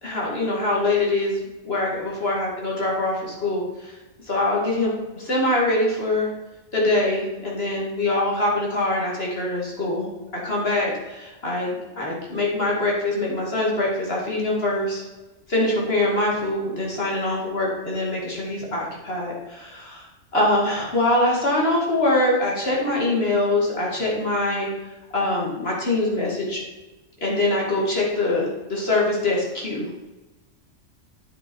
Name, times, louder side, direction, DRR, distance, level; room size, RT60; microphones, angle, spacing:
voice 1, 0.0-1.4 1.6-3.9 4.3-6.3 6.7-10.1 10.4-15.0 15.5-20.1 20.3-24.7 25.1-26.6 27.2-30.1, left 2 dB, 55° left, -3 dB, 2.5 m, -23 dB
9.6 x 7.1 x 4.6 m, 1.1 s
omnidirectional pair, 1.3 m